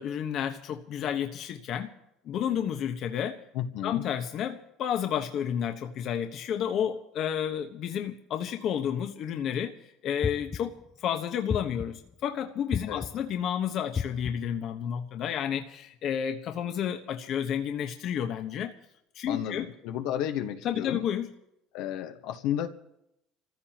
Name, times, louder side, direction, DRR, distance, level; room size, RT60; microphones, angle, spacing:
voice 1, 0.0-1.9 2.2-3.4 3.8-9.7 10.0-10.7 11.0-18.7 19.1-19.7 20.6-21.3, left 9 dB, 60° left, 5 dB, 1.2 m, -31 dB
voice 2, 3.5-4.1 12.9-13.0 19.3-21.0 21.7-22.7, left 10 dB, 75° left, 5 dB, 1.3 m, -32 dB
sound 1, 10.2-10.9 11.5-12.1 12.7-13.4 13.9-14.6, left 6 dB, 30° left, 0.6 m, -34 dB
27.5 x 15.0 x 3.0 m, 0.81 s
supercardioid pair, 90°, 0 cm